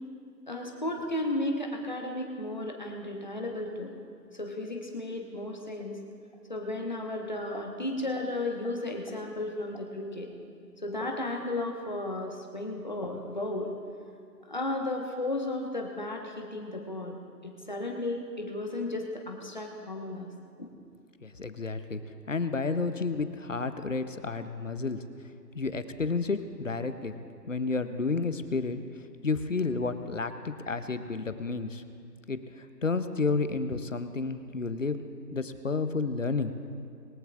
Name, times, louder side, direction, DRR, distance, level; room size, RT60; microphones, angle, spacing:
voice 1, 0.5-3.9 4.3-6.0 6.5-10.3 10.8-13.7 14.5-20.3 20.6-20.7, left 2 dB, 25° left, 1 dB, 1.2 m, -34 dB
voice 2, 21.2-22.0 22.3-25.0 25.5-27.1 27.5-28.8 29.2-31.8 32.3-32.4 32.8-35.0 35.3-36.5, left 4 dB, 50° left, 10 dB, 0.8 m, -31 dB
22.0 x 14.5 x 2.5 m, 2.3 s
figure-of-eight pair, 175°, 50 cm